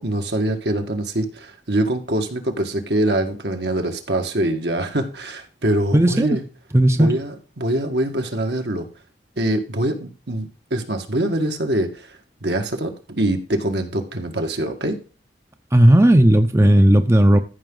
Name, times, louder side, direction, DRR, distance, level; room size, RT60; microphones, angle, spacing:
voice 1, 0.0-6.4 6.9-8.9 9.4-15.0, right 1 dB, 70° right, 1.7 m, -24 dB
voice 2, 5.9-6.3 6.7-7.1 15.7-17.4, right 1 dB, 15° right, 0.6 m, -14 dB
14.0 x 6.0 x 3.8 m
head